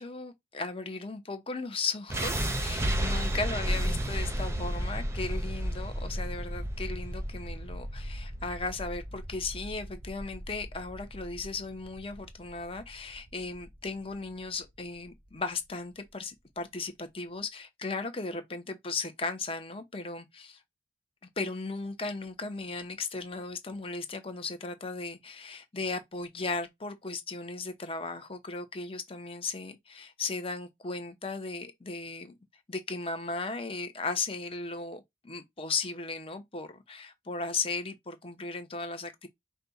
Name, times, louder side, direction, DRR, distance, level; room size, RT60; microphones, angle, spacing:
voice 1, 0.0-20.6 21.4-32.3 32.7-39.3, left 3 dB, 30° left, 0.9 m, -36 dB
sound 1, 2.1-14.1, right 1 dB, 15° right, 0.7 m, -33 dB
5.3 x 2.3 x 4.0 m
head